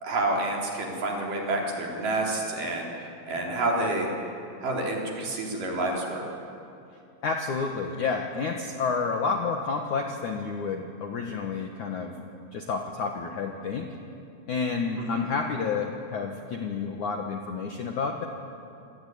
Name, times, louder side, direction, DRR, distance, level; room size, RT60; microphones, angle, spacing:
voice 1, 0.0-2.9 3.3-4.1 4.6-6.2 15.1-15.2, right 2 dB, 45° right, -1 dB, 5.0 m, -28 dB
voice 2, 7.2-12.1 12.5-13.9 14.5-18.3, left 5 dB, 60° left, 2 dB, 2.1 m, -30 dB
27.5 x 19.5 x 9.5 m, 2.7 s
omnidirectional pair, 5.4 m